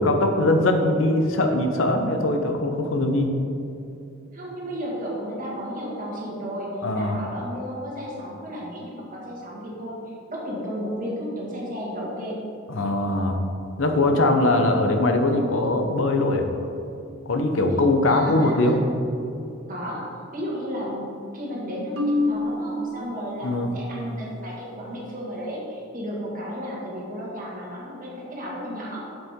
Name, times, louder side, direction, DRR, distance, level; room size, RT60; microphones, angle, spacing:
voice 1, 0.0-3.3 6.8-7.2 12.7-13.4 13.8-16.5 17.3-18.7 23.4-23.7, left 2 dB, 80° left, 5 dB, 0.8 m, -21 dB
voice 2, 4.3-9.9 10.3-12.4 14.4-14.7 18.1-18.9 19.7-29.0, equal, 45° right, -4 dB, 2.0 m, -33 dB
Marimba xylophone, 22.0-24.0, left 2 dB, 85° right, 1.1 m, -28 dB
8.1 x 7.3 x 3.7 m, 2.7 s
head